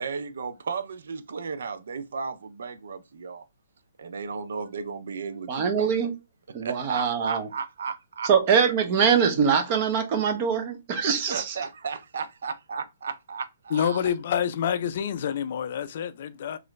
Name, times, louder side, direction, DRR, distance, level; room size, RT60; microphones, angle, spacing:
voice 1, 0.0-3.4 4.0-6.1 6.6-8.3 11.3-14.1, right 5 dB, 75° right, 0.4 m, -34 dB
voice 2, 5.5-6.1 6.5-7.5 8.2-11.6, right 6 dB, 35° right, 0.7 m, -23 dB
voice 3, 13.7-16.6, left 8 dB, 50° left, 0.4 m, -27 dB
3.0 x 2.5 x 3.1 m
hypercardioid pair, 160°, 0 cm